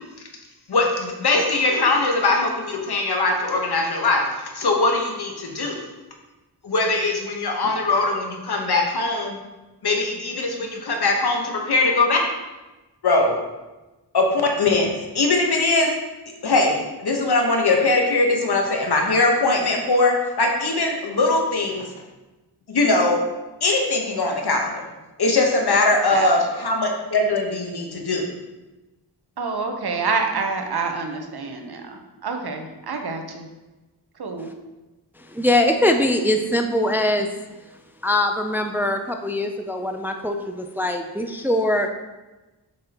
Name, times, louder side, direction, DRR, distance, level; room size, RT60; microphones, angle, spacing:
voice 1, 0.7-5.8 6.6-9.4 9.8-12.2 13.0-13.4 14.1-14.9 15.1-15.9 16.4-21.9 22.7-23.2 23.6-24.8 25.2-28.2, left 2 dB, 70° left, 1 dB, 1.2 m, -21 dB
voice 2, 29.4-33.5 34.2-34.5, right 4 dB, 70° right, 4 dB, 0.9 m, -27 dB
voice 3, 35.3-37.3 38.0-41.9, left 1 dB, 5° right, 5 dB, 0.4 m, -22 dB
7.3 x 5.4 x 3.0 m, 1.1 s
wide cardioid pair, 85°, 40 cm